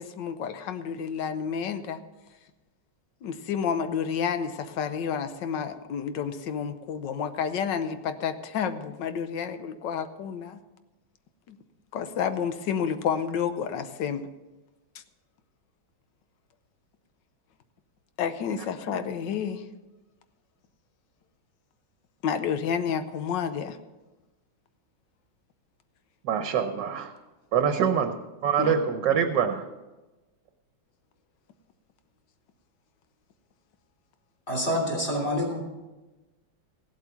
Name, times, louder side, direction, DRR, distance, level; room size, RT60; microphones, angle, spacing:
voice 1, 0.0-2.0 3.2-10.6 11.5-11.6 11.9-14.2 14.9-15.0 18.2-19.6 22.2-23.8 28.6-28.8, left 7 dB, 70° left, 10 dB, 1.4 m, -30 dB
voice 2, 26.2-27.1 27.5-28.1 28.4-29.7, right 8 dB, 65° right, 6 dB, 1.4 m, -24 dB
voice 3, 34.5-35.6, equal, 30° left, -1 dB, 3.2 m, -27 dB
16.0 x 8.0 x 5.8 m, 1.1 s
omnidirectional pair, 2.2 m